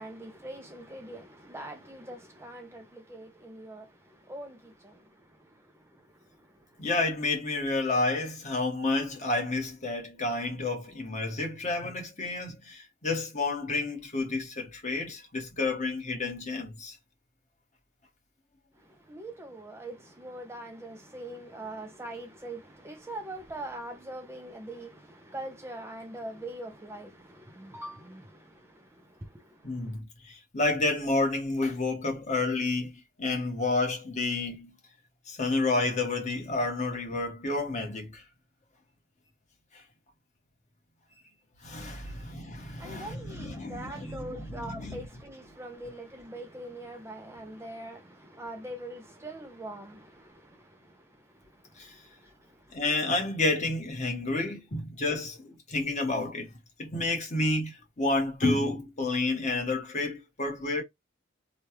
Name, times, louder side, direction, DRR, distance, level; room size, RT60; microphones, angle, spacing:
voice 1, 0.0-6.9 18.7-30.0 42.0-42.3 42.7-52.8, right 1 dB, 10° right, 0.4 m, -43 dB
voice 2, 6.8-17.0 29.6-32.9 33.2-34.7 35.3-38.2 41.6-44.9 51.8-52.0 52.7-56.5 56.8-60.8, left 2 dB, 35° left, 1.1 m, -30 dB
3.1 x 2.3 x 2.8 m
head